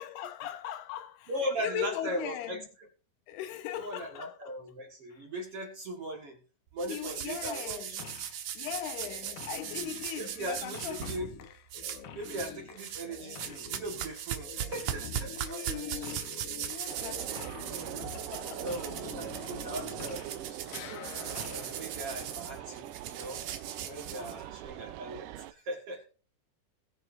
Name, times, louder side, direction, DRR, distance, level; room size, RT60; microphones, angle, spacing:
voice 1, 0.0-1.3 1.6-2.7 3.3-4.6 5.1-5.2 6.9-8.1 8.5-11.2 11.9-12.0 15.3-17.4 17.7-18.9 24.2-24.5, left 11 dB, 85° left, 3.0 m, -40 dB
voice 2, 1.3-2.6 3.8-6.4 6.7-7.8 10.2-11.3 12.2-16.1 17.3-17.5 18.6-21.0 21.4-22.8 23.1-23.4 23.8-26.0, right 1 dB, 50° right, 1.9 m, -39 dB
sound 1, 6.8-11.2 11.7-12.5 12.8-24.7, right 10 dB, 65° right, 2.2 m, -39 dB
sound 2, 8.0-8.4 8.7-20.4 20.7-22.9, left 8 dB, 65° left, 2.4 m, -47 dB
sound 3, 16.9-25.5, right 13 dB, 85° right, 1.9 m, -42 dB
21.0 x 7.1 x 2.6 m
omnidirectional pair, 4.6 m